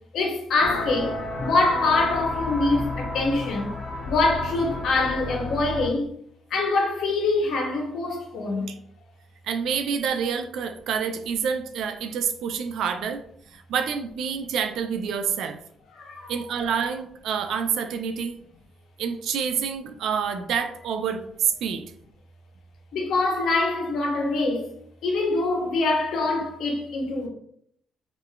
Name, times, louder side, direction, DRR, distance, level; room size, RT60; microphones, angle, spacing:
voice 1, 0.1-1.1 1.4-3.7 4.1-6.1 6.5-8.7 16.0-16.3 22.9-24.7 25.0-27.3, left 3 dB, 75° left, 0.7 m, -24 dB
sound 1, 0.6-5.9, left 1 dB, 40° left, 0.9 m, -31 dB
voice 2, 9.4-13.2 13.5-15.6 16.3-18.4 19.0-21.9, right 7 dB, 80° right, 0.3 m, -27 dB
3.5 x 2.4 x 2.2 m
cardioid pair, 90°, 0 cm